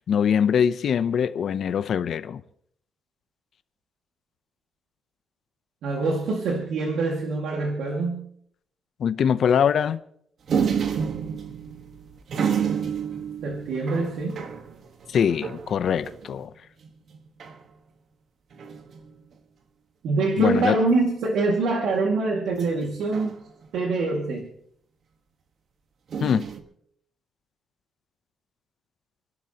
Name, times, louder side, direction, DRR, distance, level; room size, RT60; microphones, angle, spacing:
voice 1, 0.1-2.4 9.0-10.0 15.1-16.5 20.4-20.8 26.2-26.5, left 8 dB, 60° left, 0.6 m, -23 dB
voice 2, 5.8-8.3 13.4-14.4 20.0-23.4 23.7-24.5, right 3 dB, 90° right, 2.0 m, -25 dB
sound 1, 10.5-16.5 16.8-16.9 17.1-17.6 18.5-19.1 20.5-21.0 22.6-23.9 26.1-26.6, right 7 dB, 60° right, 1.4 m, -30 dB
29.5 x 12.0 x 2.9 m
cardioid pair, 140°, 0 cm